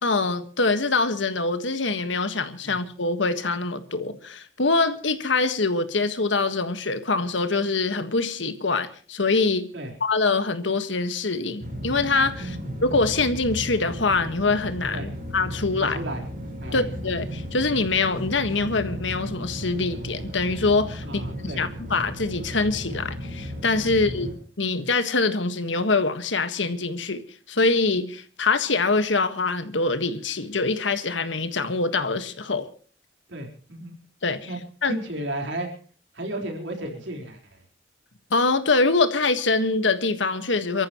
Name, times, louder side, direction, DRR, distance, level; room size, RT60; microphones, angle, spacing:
voice 1, 0.0-9.7 10.0-12.6 12.8-16.0 16.7-21.2 21.6-24.3 24.6-27.2 27.5-32.7 34.2-34.5 34.8-35.0 38.3-40.9, left 3 dB, 80° left, 1.6 m, -24 dB
sound 1, 11.6-24.3, equal, 45° right, 5.1 m, -35 dB
voice 2, 12.4-12.8 14.9-15.1 15.8-16.2 16.6-16.9 21.0-21.6 23.9-24.0 33.3-34.0 34.5-34.6 34.9-35.7 36.1-37.6, right 1 dB, 70° right, 4.3 m, -33 dB
28.5 x 14.0 x 3.1 m
head